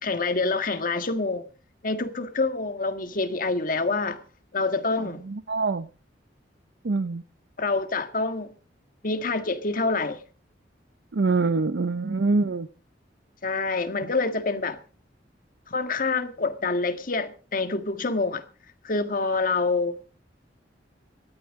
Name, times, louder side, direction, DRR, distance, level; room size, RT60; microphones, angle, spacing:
voice 1, 0.0-1.5 1.8-4.2 4.5-5.2 7.6-8.5 9.0-10.2 13.4-14.8 15.7-18.4 18.8-20.0, left 3 dB, 50° left, 1.6 m, -26 dB
voice 2, 5.0-5.9 6.8-7.2 11.1-12.7, right 3 dB, 70° right, 0.6 m, -25 dB
19.0 x 13.5 x 3.7 m
head